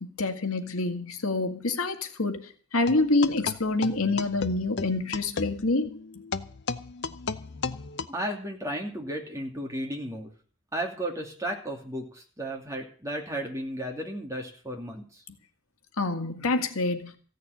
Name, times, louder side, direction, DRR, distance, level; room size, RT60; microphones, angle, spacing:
voice 1, 0.0-6.0 16.0-17.1, left 2 dB, 90° left, 6 dB, 1.9 m, -27 dB
sound 1, 2.9-8.1, left 4 dB, 55° left, 0.7 m, -35 dB
voice 2, 8.1-10.3 10.7-15.2, right 1 dB, 15° right, 1 dB, 2.7 m, -34 dB
15.0 x 6.6 x 9.8 m, 0.43 s
head